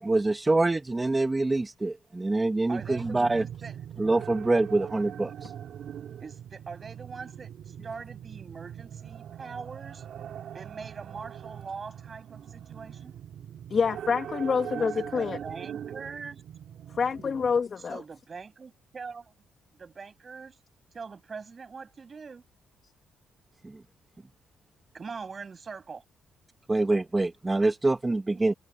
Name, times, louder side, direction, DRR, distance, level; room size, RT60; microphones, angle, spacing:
voice 1, 0.1-3.4 4.0-5.3 26.7-28.5, right 2 dB, 20° right, 1.3 m, -25 dB
voice 2, 2.7-3.8 6.2-10.0 10.5-13.1 14.7-16.4 17.9-19.3 19.7-20.6 20.9-22.4 24.9-26.0 27.8-28.1, right 5 dB, 35° right, 8.0 m, -42 dB
sound 1, 2.8-17.6, right 9 dB, 65° right, 5.7 m, -41 dB
voice 3, 13.7-15.4 16.9-18.0, left 5 dB, 45° left, 1.9 m, -27 dB
cardioid pair, 90°, 0 cm